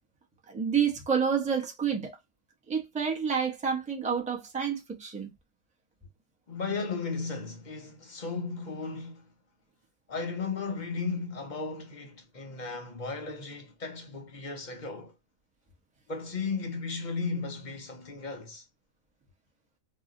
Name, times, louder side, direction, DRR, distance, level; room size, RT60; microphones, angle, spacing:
voice 1, 0.5-2.2 2.7-5.3, right 7 dB, 10° right, 0.4 m, -29 dB
voice 2, 6.5-9.2 10.1-15.1 16.1-18.6, left 4 dB, 45° left, 0.6 m, -35 dB
2.7 x 2.0 x 3.6 m
omnidirectional pair, 1.5 m